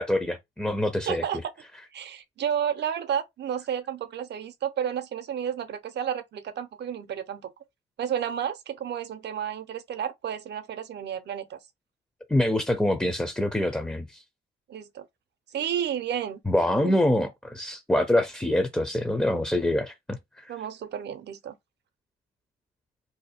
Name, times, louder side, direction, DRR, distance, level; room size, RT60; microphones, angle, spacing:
voice 1, 0.0-1.2 12.3-14.2 16.5-20.5, left 1 dB, 5° left, 0.5 m, -25 dB
voice 2, 1.1-1.5 1.9-7.5 8.0-11.6 14.7-15.0 15.5-16.4 16.8-17.0 20.5-21.6, right 9 dB, 60° right, 0.7 m, -31 dB
2.7 x 2.2 x 4.1 m
cardioid pair, 90°, 20 cm